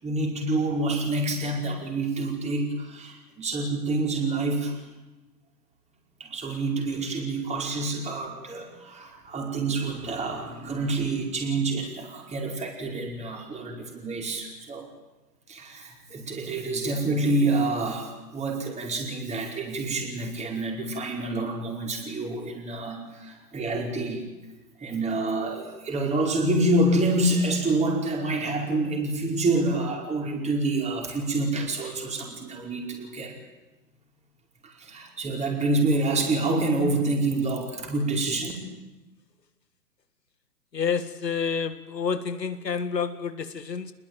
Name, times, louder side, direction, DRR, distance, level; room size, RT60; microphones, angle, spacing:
voice 1, 0.0-4.8 6.2-14.9 15.5-24.2 24.8-33.4 34.6-38.5, right 2 dB, 15° right, 5.1 m, -27 dB
voice 2, 40.7-43.9, left 6 dB, 80° left, 1.8 m, -29 dB
26.5 x 21.0 x 9.2 m
figure-of-eight pair, 120°, 49 cm